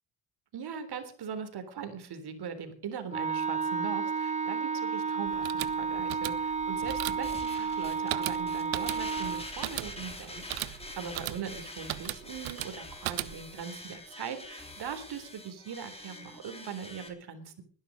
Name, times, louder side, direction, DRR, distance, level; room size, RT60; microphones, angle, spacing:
voice 1, 0.5-17.6, right 7 dB, 55° right, 9 dB, 3.8 m, -40 dB
Wind instrument woodwind instrument, 3.1-9.5, right 5 dB, 15° right, 1.9 m, -32 dB
sound 1, 5.3-13.6, right 18 dB, 80° right, 1.1 m, -38 dB
sound 2, 6.8-17.1, left 1 dB, 10° left, 3.9 m, -45 dB
21.0 x 11.5 x 5.2 m, 0.43 s
cardioid pair, 105°, 47 cm